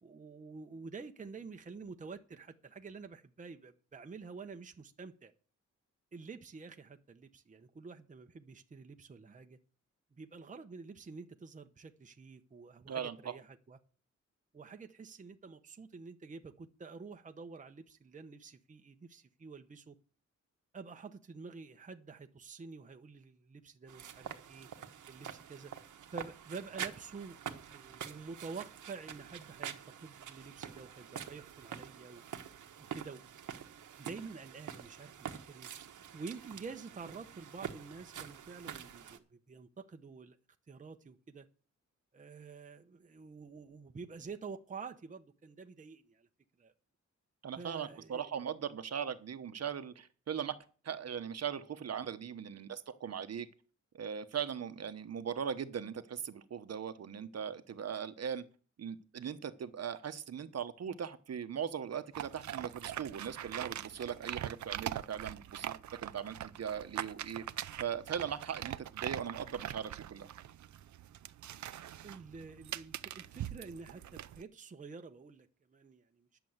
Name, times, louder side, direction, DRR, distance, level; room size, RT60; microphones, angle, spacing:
voice 1, 0.0-5.3 6.1-9.6 10.1-13.8 14.5-20.0 20.7-24.7 25.1-25.7 26.1-32.2 32.8-33.2 34.0-35.7 36.1-40.4 40.7-41.5 42.1-46.3 46.6-46.7 47.5-48.3 72.0-76.4, right 4 dB, 25° right, 0.8 m, -48 dB
voice 2, 12.9-13.3 47.4-50.5 50.8-53.5 53.9-58.4 58.8-67.4 67.8-70.3, right 8 dB, 55° right, 1.0 m, -39 dB
sound 1, 23.9-39.2, right 8 dB, 90° right, 1.2 m, -46 dB
sound 2, 62.1-74.4, right 11 dB, 75° right, 0.6 m, -43 dB
10.5 x 7.0 x 7.9 m
wide cardioid pair, 135°, 30 cm